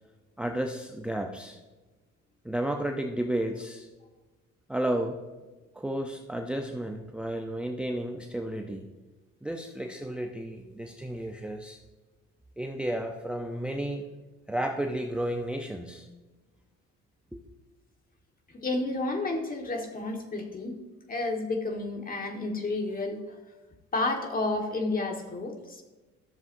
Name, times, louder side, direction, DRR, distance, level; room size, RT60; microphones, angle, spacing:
voice 1, 0.4-1.6 2.4-3.9 4.7-5.2 5.7-8.9 9.4-11.8 12.6-14.1 14.5-16.1 17.3-17.4, right 1 dB, 5° right, 3 dB, 0.6 m, -32 dB
voice 2, 18.5-20.7 21.1-23.4 23.9-25.8, left 2 dB, 30° left, 3 dB, 1.6 m, -31 dB
14.0 x 7.0 x 2.7 m, 1.2 s
cardioid pair, 95°, 29 cm